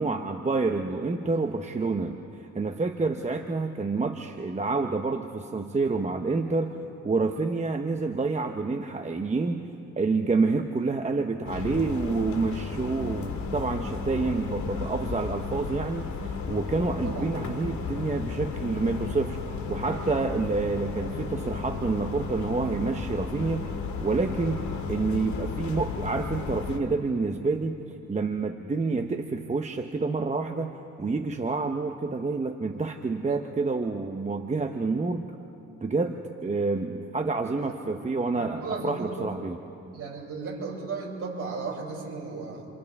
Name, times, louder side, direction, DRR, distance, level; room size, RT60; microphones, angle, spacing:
voice 1, 0.0-6.8 7.0-9.7 10.0-19.4 19.7-23.7 24.0-27.8 28.1-35.3 35.8-39.6, right 3 dB, 25° right, 5 dB, 1.0 m, -28 dB
sound 1, 11.4-26.8, left 5 dB, 70° left, 2.4 m, -34 dB
voice 2, 38.4-39.3 39.9-42.7, right 4 dB, 50° right, -3 dB, 7.1 m, -35 dB
29.0 x 27.5 x 3.6 m, 2.9 s
cardioid pair, 90°, 30 cm